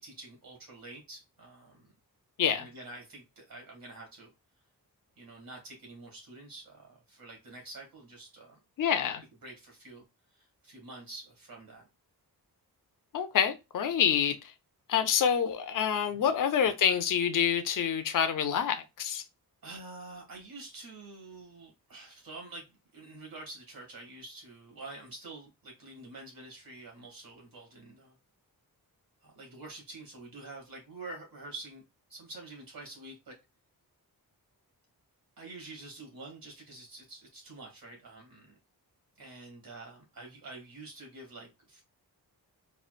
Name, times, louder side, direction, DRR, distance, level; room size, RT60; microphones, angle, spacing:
voice 1, 0.0-1.9 2.6-4.3 5.2-8.5 9.0-9.1 9.4-10.0 10.3-11.8 16.1-16.2 19.6-28.2 29.2-31.8 32.1-33.4 35.4-38.6 39.2-41.8, right 2 dB, 65° right, 2.1 m, -47 dB
voice 2, 8.8-9.2 13.1-14.5 14.9-19.2, left 8 dB, 55° left, 0.5 m, -27 dB
4.3 x 2.4 x 2.4 m
wide cardioid pair, 175°, 38 cm